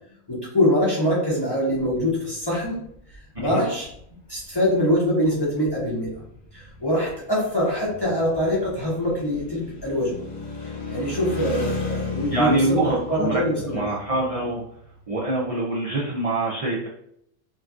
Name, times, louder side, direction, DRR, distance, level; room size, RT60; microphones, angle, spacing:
voice 1, 0.3-2.8 3.4-3.9 4.3-6.1 6.5-10.2 10.9-13.8, equal, 30° left, -6 dB, 0.5 m, -23 dB
sound 1, 1.8-2.1 2.5-3.5 3.8-4.0 4.4-4.5 5.2-5.3 5.5-15.4, left 3 dB, 60° left, 0.9 m, -35 dB
voice 2, 12.3-13.4 13.7-14.6 15.1-16.9, right 2 dB, 60° right, -5 dB, 0.3 m, -24 dB
2.8 x 2.5 x 2.3 m, 0.71 s
omnidirectional pair, 1.4 m